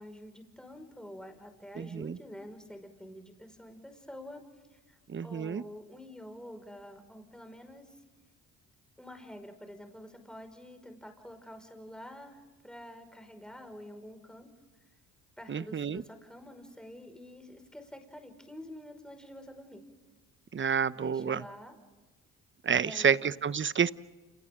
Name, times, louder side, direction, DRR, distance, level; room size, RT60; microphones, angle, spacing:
voice 1, 0.0-4.4 4.7-8.0 9.0-14.5 15.4-19.8 20.9-21.8 22.8-23.2, equal, ahead, 5 dB, 5.5 m, -48 dB
voice 2, 1.8-2.2 5.1-5.6 15.5-16.0 20.5-21.4 22.7-23.2 23.4-23.9, right 7 dB, 30° right, 17 dB, 0.9 m, -28 dB
29.5 x 29.5 x 3.8 m, 1.3 s
supercardioid pair, 60°, 41 cm